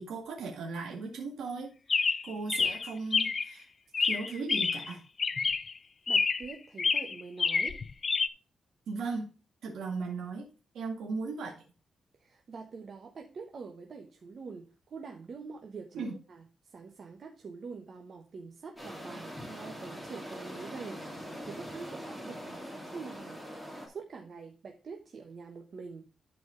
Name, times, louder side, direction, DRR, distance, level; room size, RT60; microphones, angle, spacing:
voice 1, 0.0-1.7 2.2-3.7 4.0-5.0 8.9-9.3 9.6-10.5 10.7-11.5 15.9-16.1, right 4 dB, 85° right, 1 dB, 2.0 m, -37 dB
Chirp tweet, 1.9-3.5 3.9-4.9 5.2-5.7 6.1-6.5 6.8-8.3, left 5 dB, 40° left, 0.4 m, -28 dB
voice 2, 6.1-7.8 12.2-21.1 21.4-23.4 23.9-26.1, right 4 dB, 50° right, 3 dB, 1.2 m, -45 dB
sound 1, 18.8-23.9, equal, ahead, 3.1 m, -43 dB
11.5 x 4.8 x 3.9 m, 0.34 s
cardioid pair, 120°, 0 cm